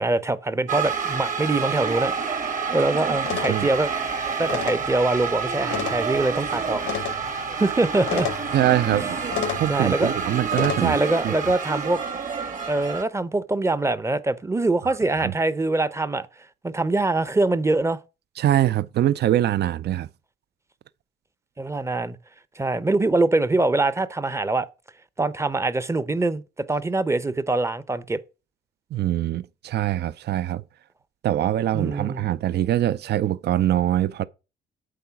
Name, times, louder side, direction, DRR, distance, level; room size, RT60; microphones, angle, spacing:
voice 1, 0.0-2.5 2.7-3.9 4.4-6.8 7.6-8.3 9.7-10.1 10.8-12.0 12.7-16.3 16.6-18.0 21.6-22.2 22.6-24.7 25.2-28.2 31.7-32.2, right 2 dB, 15° right, 0.6 m, -23 dB
sound 1, 0.7-13.0, right 6 dB, 40° right, 1.3 m, -28 dB
sound 2, 3.2-10.8, left 9 dB, 70° left, 0.8 m, -33 dB
voice 2, 8.5-9.2 9.5-11.0 11.2-11.3 15.2-15.3 18.4-20.1 28.9-30.6 31.2-34.2, right 12 dB, 60° right, 0.5 m, -23 dB
8.5 x 3.9 x 5.8 m
cardioid pair, 90°, 20 cm